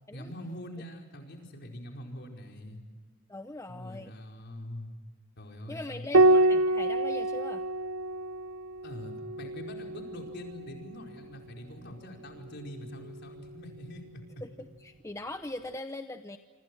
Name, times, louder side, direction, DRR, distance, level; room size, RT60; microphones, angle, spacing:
voice 1, 0.1-2.8 3.7-4.9 5.4-6.1 8.8-14.4, left 1 dB, 55° left, 2 dB, 5.0 m, -44 dB
voice 2, 3.3-4.1 5.7-7.6 14.4-14.5 14.8-16.4, left 2 dB, 15° left, 7 dB, 0.8 m, -40 dB
Piano, 6.1-11.0 12.6-13.4, right 2 dB, 90° right, 0.8 m, -27 dB
27.5 x 26.0 x 6.3 m, 1.4 s
head